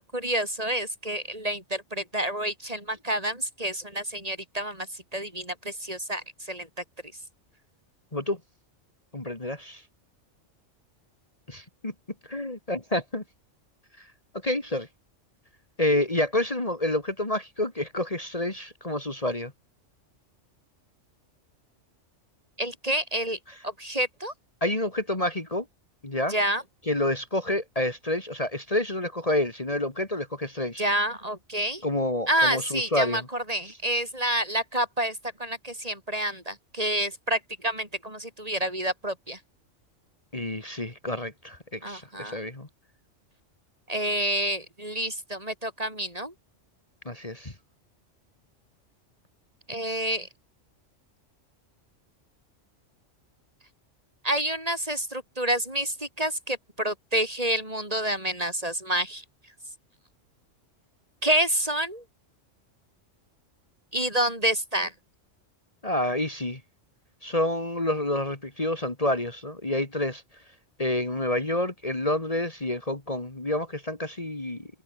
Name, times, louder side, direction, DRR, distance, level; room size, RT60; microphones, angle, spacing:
voice 1, 0.0-4.9 5.1-6.7 22.6-23.4 23.6-24.3 26.3-26.6 30.8-31.8 32.3-39.4 41.8-42.3 43.9-46.3 49.7-50.3 54.2-59.2 61.2-62.0 63.9-64.9, right 1 dB, 30° right, 5.8 m, -28 dB
voice 2, 9.1-9.8 11.5-11.9 12.3-13.2 14.4-14.9 15.8-19.5 24.6-25.6 26.0-26.3 26.9-30.8 31.8-33.3 40.3-42.7 47.0-47.5 65.8-66.6 67.2-70.2 70.8-74.7, left 1 dB, 30° left, 2.7 m, -28 dB
omnidirectional pair, 1.3 m